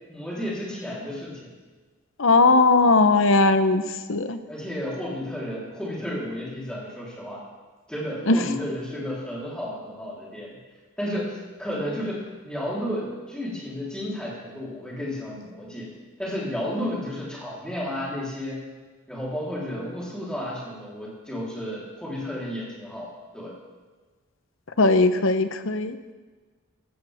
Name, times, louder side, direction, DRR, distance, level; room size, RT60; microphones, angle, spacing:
voice 1, 0.1-1.5 4.5-7.4 7.9-10.6 11.0-18.6 19.1-23.6, left 1 dB, 5° left, -6 dB, 3.6 m, -32 dB
voice 2, 2.2-3.8 4.1-4.4 8.3-8.4 24.8-26.0, left 3 dB, 65° left, 10 dB, 0.8 m, -18 dB
15.5 x 15.0 x 3.6 m, 1.4 s
head